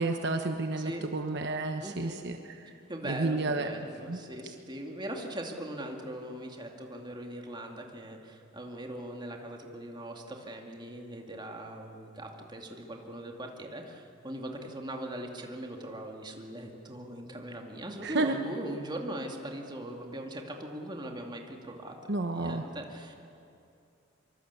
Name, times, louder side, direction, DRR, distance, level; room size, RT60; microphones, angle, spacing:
voice 1, 0.0-2.7 3.0-3.7 4.1-4.2 18.0-18.4 22.1-22.7, right 2 dB, 60° right, 5 dB, 1.1 m, -31 dB
voice 2, 1.8-2.2 2.9-23.1, right 1 dB, 25° right, 2 dB, 2.5 m, -40 dB
24.5 x 24.0 x 8.3 m, 2.6 s
head